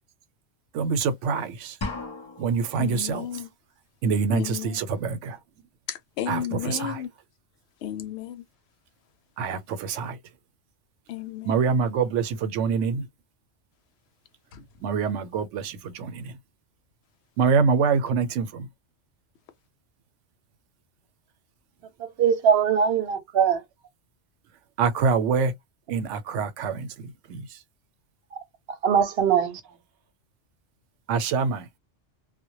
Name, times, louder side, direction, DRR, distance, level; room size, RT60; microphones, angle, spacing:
voice 1, 0.7-1.7 2.4-3.3 4.0-5.4 6.3-7.0 9.4-10.2 11.4-13.1 14.8-16.3 17.4-18.7 24.8-25.5 25.9-27.4 31.1-31.7, right 5 dB, 90° right, 0.9 m, -25 dB
sound 1, 1.8-2.8, left 3 dB, 35° left, 0.5 m, -35 dB
voice 2, 2.8-3.5 4.3-4.8 5.9-7.1 7.8-8.5 11.1-11.5 14.5-14.7, left 11 dB, 70° left, 0.8 m, -33 dB
voice 3, 22.2-23.6 28.3-28.4 28.8-29.6, right 7 dB, 65° right, 0.8 m, -21 dB
2.1 x 2.1 x 2.8 m
omnidirectional pair, 1.2 m